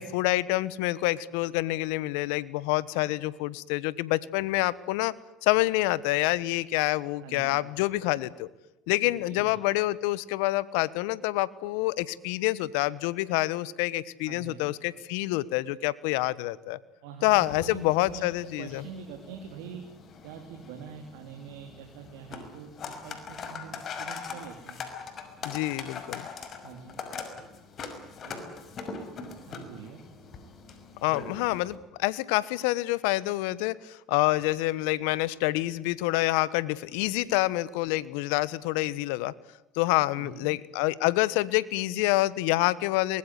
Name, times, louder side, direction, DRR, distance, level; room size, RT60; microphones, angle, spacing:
voice 1, 0.0-5.1 5.4-8.5 8.9-16.8 17.2-18.8 25.4-26.3 31.0-39.3 39.7-43.2, left 18 dB, 80° left, 20 dB, 1.1 m, -27 dB
voice 2, 7.2-7.7 9.3-9.6 14.3-14.7 17.0-18.2 18.6-19.8 20.2-24.8 26.6-27.0 28.2-28.4 29.4-30.0 40.1-40.5, right 7 dB, 80° right, 4 dB, 3.3 m, -44 dB
sound 1, 17.3-31.8, left 5 dB, 50° left, 5.7 m, -42 dB
24.0 x 21.0 x 9.6 m, 0.93 s
hypercardioid pair, 75°, 0 cm